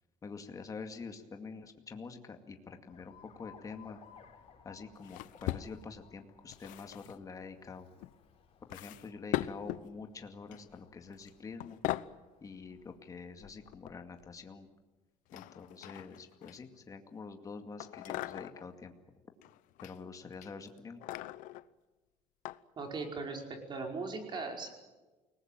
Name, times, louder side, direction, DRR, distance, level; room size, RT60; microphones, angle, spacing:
voice 1, 0.2-4.0 4.6-7.9 8.7-11.8 12.4-14.7 15.3-18.9 19.8-21.0, left 4 dB, 25° left, 5 dB, 2.2 m, -46 dB
Alarm, 2.9-13.0, left 7 dB, 45° left, 4.2 m, -61 dB
sound 1, 5.0-6.1 6.5-7.1 8.0-8.1 8.7-9.9 10.5-10.8 11.1-11.3 11.6-12.1 13.4-14.3 15.3-16.8 17.8-18.7 19.4-20.0 20.3-21.6 22.4-22.6 23.2-23.3, left 16 dB, 85° left, 0.9 m, -40 dB
voice 2, 22.8-24.7, right 3 dB, 35° right, 3 dB, 5.1 m, -39 dB
29.5 x 20.0 x 9.1 m, 1.2 s
cardioid pair, 145°, 13 cm